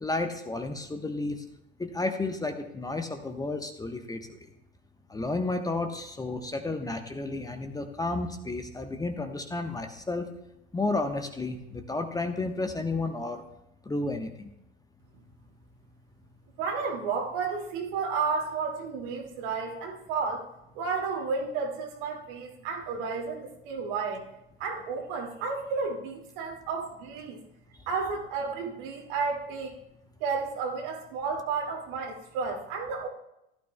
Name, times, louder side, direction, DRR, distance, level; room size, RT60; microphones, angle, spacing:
voice 1, 0.0-1.4 1.8-4.3 5.1-10.2 10.7-13.4 13.9-14.5, left 2 dB, 10° left, 6 dB, 1.0 m, -32 dB
voice 2, 16.6-20.5 20.7-24.3 24.6-27.4 27.9-29.7 30.2-33.1, right 5 dB, 60° right, 1 dB, 2.3 m, -32 dB
16.0 x 12.0 x 2.2 m, 0.86 s
figure-of-eight pair, 70°, 29 cm